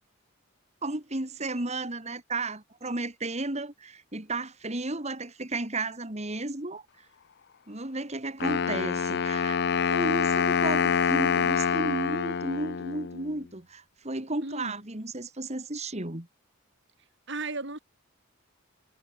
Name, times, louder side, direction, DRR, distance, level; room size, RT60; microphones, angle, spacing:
voice 1, 0.8-7.1 7.7-9.6 9.9-16.3, right 2 dB, 30° right, 2.6 m, -33 dB
Wind instrument woodwind instrument, 8.4-13.4, left 6 dB, 55° left, 0.6 m, -26 dB
voice 2, 14.4-14.8 17.3-17.8, right 3 dB, 60° right, 4.5 m, -35 dB
head